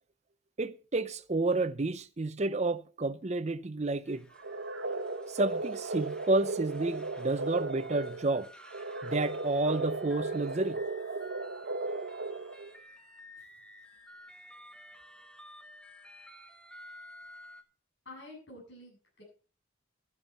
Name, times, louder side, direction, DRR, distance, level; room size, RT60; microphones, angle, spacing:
voice 1, 0.6-4.3 5.3-8.5 9.0-10.8, right 2 dB, 35° right, 0.7 m, -30 dB
sound 1, 4.1-17.6, left 1 dB, 5° left, 1.2 m, -53 dB
sound 2, 4.4-12.8, right 3 dB, 75° right, 1.1 m, -36 dB
voice 2, 18.0-19.2, left 2 dB, 65° left, 7.9 m, -49 dB
12.5 x 11.0 x 4.3 m
head